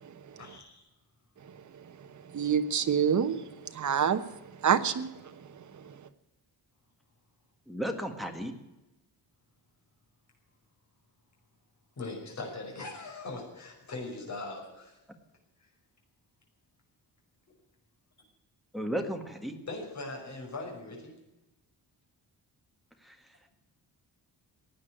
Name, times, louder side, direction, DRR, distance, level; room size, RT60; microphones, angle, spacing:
voice 1, 0.4-0.8 12.0-15.0 15.6-15.7 17.5-17.6 19.7-21.1, left 2 dB, 40° left, 1 dB, 5.7 m, -40 dB
voice 2, 2.3-4.2 4.6-5.1 5.7-5.8, right 7 dB, 45° right, 9 dB, 1.1 m, -26 dB
voice 3, 7.7-8.5 18.7-19.6 23.0-23.1, equal, ahead, 5 dB, 1.7 m, -34 dB
16.5 x 9.5 x 9.1 m, 0.99 s
wide cardioid pair, 165°, 40 cm